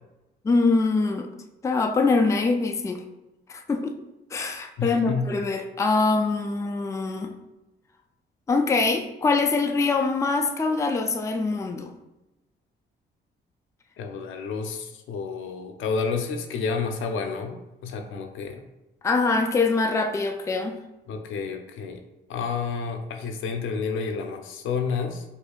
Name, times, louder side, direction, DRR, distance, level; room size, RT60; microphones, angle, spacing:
voice 1, 0.4-1.3 1.6-3.0 3.5-4.0 4.3-7.3 8.5-11.9 19.0-20.8, left 3 dB, 15° left, 4 dB, 0.3 m, -23 dB
voice 2, 4.8-5.3 14.0-18.7 21.1-22.0 22.3-25.2, left 5 dB, 80° left, 5 dB, 0.5 m, -30 dB
4.7 x 2.6 x 2.3 m, 0.99 s
cardioid pair, 90°, 20 cm